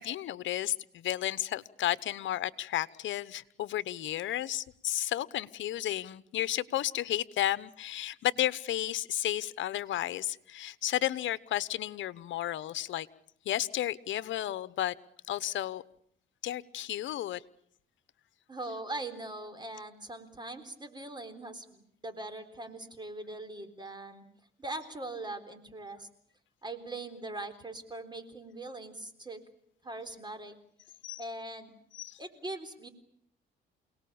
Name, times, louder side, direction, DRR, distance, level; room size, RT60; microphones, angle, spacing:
voice 1, 0.0-13.1 13.4-14.9 15.3-15.8 16.4-17.4 31.0-31.2 31.9-32.2, left 13 dB, 75° left, 1.0 m, -33 dB
voice 2, 18.5-24.2 24.6-26.1 26.6-29.4 29.8-30.5 31.2-31.7 32.2-32.9, right 2 dB, 20° right, 3.8 m, -41 dB
29.0 x 18.5 x 8.8 m
cardioid pair, 90°, 20 cm